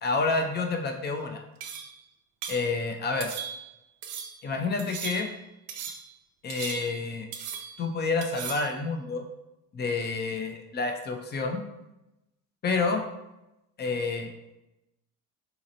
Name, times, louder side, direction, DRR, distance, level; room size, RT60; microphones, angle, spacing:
voice 1, 0.0-1.4 2.5-3.3 4.4-5.3 6.4-7.3 7.8-9.2 9.7-11.6 12.6-13.1 13.8-14.3, left 3 dB, 30° left, 4 dB, 0.5 m, -29 dB
sound 1, 1.6-2.0 2.4-2.7 3.2-3.7 4.0-4.4 4.8-5.4 5.7-6.1 6.5-7.1 7.3-7.9 8.2-8.7, right 7 dB, 85° right, 0.6 m, -38 dB
4.0 x 2.9 x 2.6 m, 0.93 s
cardioid pair, 115°, 34 cm